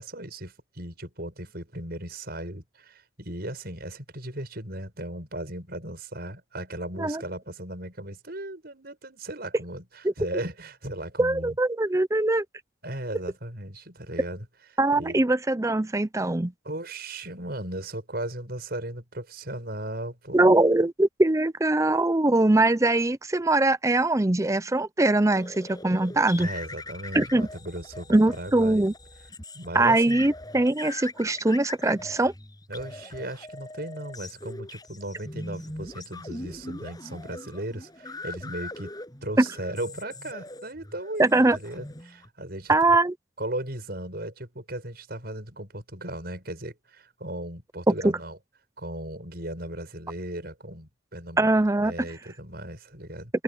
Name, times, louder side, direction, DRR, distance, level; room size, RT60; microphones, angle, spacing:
voice 1, 0.0-11.6 12.8-14.5 14.9-15.3 16.6-20.4 26.4-28.9 29.5-30.3 32.7-38.9 39.2-43.0 43.4-48.4 48.8-53.3, right 1 dB, 50° right, 7.0 m, -37 dB
voice 2, 11.2-12.4 14.8-16.5 20.3-26.5 27.1-27.5 28.1-28.9 29.7-32.3 39.4-39.5 41.2-41.6 42.7-43.1 48.0-48.1 51.4-51.9, right 2 dB, 15° right, 0.6 m, -22 dB
sound 1, 25.3-42.3, left 2 dB, 20° left, 7.5 m, -41 dB
head